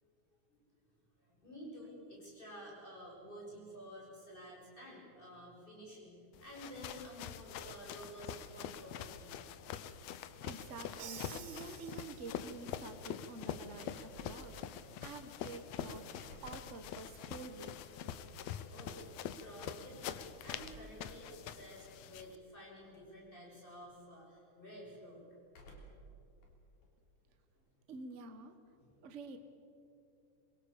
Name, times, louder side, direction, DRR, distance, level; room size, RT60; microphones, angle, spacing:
voice 1, 1.2-9.4 18.7-25.2 28.8-28.9, equal, 15° left, -3 dB, 7.7 m, -51 dB
sound 1, 6.3-22.4, left 9 dB, 70° left, 1.9 m, -45 dB
voice 2, 10.4-18.0 27.9-28.6 29.0-29.4, right 3 dB, 50° right, 7 dB, 0.8 m, -49 dB
Crash cymbal, 11.0-12.7, right 8 dB, 80° right, 2.9 m, -51 dB
sound 2, 14.0-15.6 16.0-18.6 20.4-21.0 21.5-21.6 22.7-23.2 23.5-23.9 25.5-26.1 26.4-27.8, right 1 dB, 85° left, 4.8 m, -58 dB
26.5 x 22.0 x 7.3 m, 2.6 s
omnidirectional pair, 3.5 m